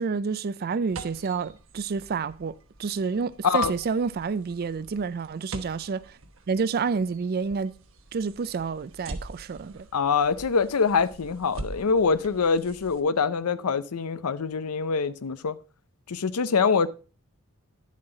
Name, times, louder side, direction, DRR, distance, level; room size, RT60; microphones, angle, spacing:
voice 1, 0.0-6.2 6.5-7.8 8.1-9.9, right 5 dB, 45° right, 0.4 m, -29 dB
sound 1, 0.9-13.0, right 2 dB, 60° right, 1.1 m, -44 dB
voice 2, 9.9-15.6 16.1-16.9, left 5 dB, 75° left, 0.6 m, -24 dB
10.5 x 7.4 x 3.9 m
head